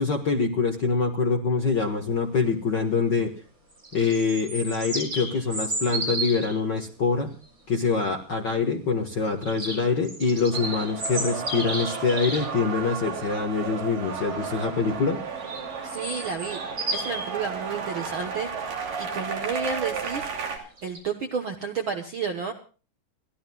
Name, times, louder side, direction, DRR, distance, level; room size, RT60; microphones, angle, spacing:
voice 1, 0.0-3.3 3.9-7.3 7.7-15.2, left 4 dB, 50° left, 4 dB, 1.3 m, -25 dB
sound 1, 3.7-6.6 9.4-12.5 15.4-17.2 20.8-21.0, right 2 dB, 35° right, 7.0 m, -32 dB
sound 2, 10.5-20.6, right 5 dB, 90° right, 4.5 m, -33 dB
voice 2, 15.8-16.6 16.9-18.5 19.0-20.3 20.8-22.5, right 6 dB, 60° right, 5 dB, 1.3 m, -31 dB
30.0 x 13.0 x 2.3 m, 0.37 s
omnidirectional pair, 3.7 m